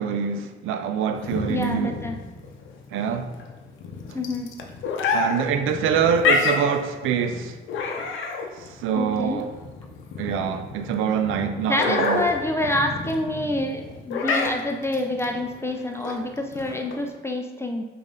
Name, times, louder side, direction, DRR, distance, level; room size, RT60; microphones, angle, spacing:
voice 1, 0.0-2.0 2.9-3.3 5.1-7.6 8.5-9.5 10.2-12.2, right 7 dB, 90° right, 0.5 m, -25 dB
sound 1, 1.2-17.1, left 4 dB, 80° left, 0.7 m, -29 dB
voice 2, 1.5-2.2 4.1-4.5 9.0-9.4 11.7-17.8, left 1 dB, 15° left, 0.4 m, -27 dB
5.3 x 2.6 x 3.7 m
cardioid pair, 90°, 20 cm